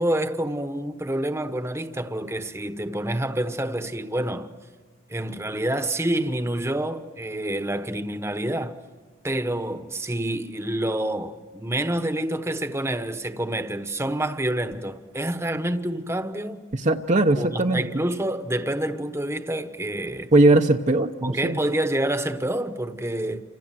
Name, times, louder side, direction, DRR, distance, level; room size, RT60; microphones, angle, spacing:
voice 1, 0.0-4.5 5.1-8.8 9.2-16.7 17.4-20.3 21.2-23.4, right 1 dB, 15° right, 1.1 m, -27 dB
voice 2, 16.7-17.8 20.3-21.6, right 2 dB, 35° right, 0.8 m, -19 dB
29.0 x 27.0 x 7.5 m
head